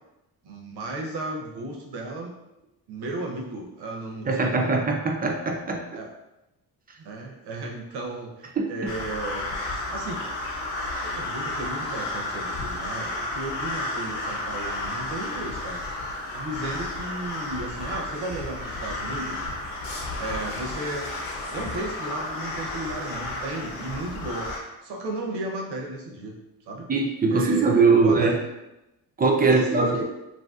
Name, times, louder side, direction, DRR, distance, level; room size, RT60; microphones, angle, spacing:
voice 1, 0.4-2.3 2.9-4.9 6.0-6.1 7.0-9.5 9.9-10.3 11.0-15.8 16.3-19.4 20.2-21.1 21.5-24.5 24.8-26.4 26.7-26.9 27.3-28.4 29.4-30.0, right 2 dB, 80° right, 0 dB, 0.7 m, -34 dB
voice 2, 4.3-6.0 8.6-8.9 26.9-28.4 29.2-30.0, right 4 dB, 25° right, 1 dB, 0.4 m, -21 dB
sound 1, 8.9-24.6, left 2 dB, 75° left, 0.9 m, -32 dB
3.1 x 2.6 x 2.3 m, 0.94 s
cardioid pair, 90°, 39 cm